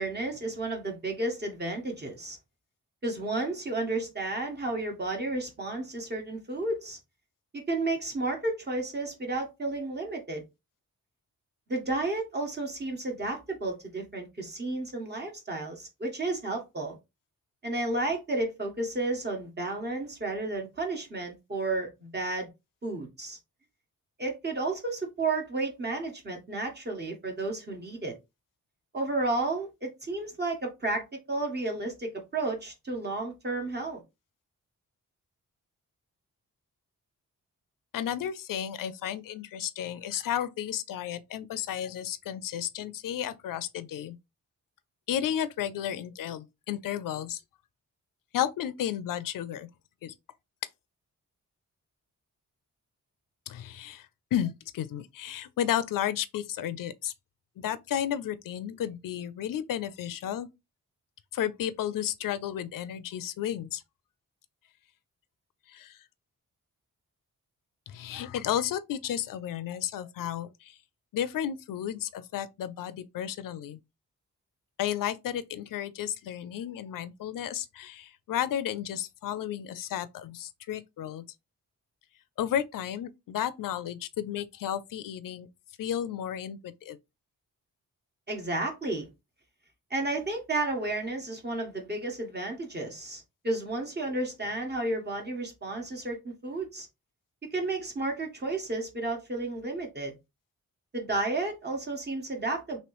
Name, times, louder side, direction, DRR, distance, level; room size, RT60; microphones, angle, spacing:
voice 1, 0.0-2.4 3.0-7.0 7.5-10.4 11.7-17.0 17.6-22.5 22.8-23.4 24.2-28.1 28.9-34.0 88.3-89.1 89.9-96.9 97.5-100.1 100.9-102.8, right 2 dB, 30° right, 1.3 m, -32 dB
voice 2, 37.9-44.2 45.1-47.4 48.3-49.7 50.0-50.1 53.5-57.1 57.6-60.5 61.3-63.8 65.7-66.0 67.9-70.7 71.1-73.8 74.8-81.2 82.4-85.5 85.8-87.0, left 10 dB, 80° left, 0.5 m, -33 dB
3.0 x 2.8 x 3.0 m
wide cardioid pair, 95°, 33 cm